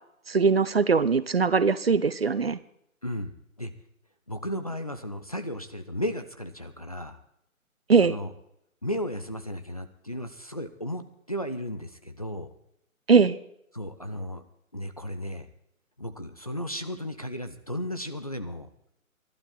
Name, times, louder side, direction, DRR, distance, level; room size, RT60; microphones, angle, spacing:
voice 1, 0.3-2.6 7.9-8.1 13.1-13.4, right 5 dB, 45° right, 15 dB, 0.6 m, -21 dB
voice 2, 3.0-3.7 4.3-7.2 8.0-8.3 8.8-12.5 13.7-14.4 14.7-15.5 16.0-18.7, equal, 25° left, 7 dB, 0.5 m, -34 dB
20.0 x 12.0 x 4.1 m, 0.75 s
figure-of-eight pair, 150°, 42 cm